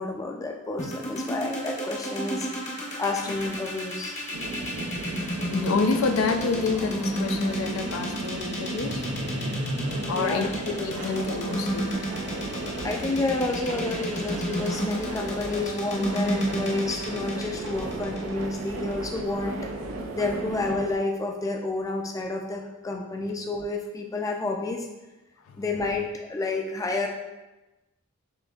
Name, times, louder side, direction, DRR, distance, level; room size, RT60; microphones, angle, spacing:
voice 1, 0.0-2.5 3.0-4.1 10.0-10.5 10.8-11.0 12.8-19.7 20.1-24.9 25.6-27.1, left 2 dB, 15° left, 0.3 m, -30 dB
sound 1, 0.8-18.9, equal, 35° left, 0.7 m, -31 dB
sound 2, 4.3-21.0, right 2 dB, 80° right, 0.4 m, -35 dB
voice 2, 5.2-9.1 10.1-12.0 25.5-25.6, left 4 dB, 90° left, 0.4 m, -28 dB
6.8 x 2.6 x 2.3 m
head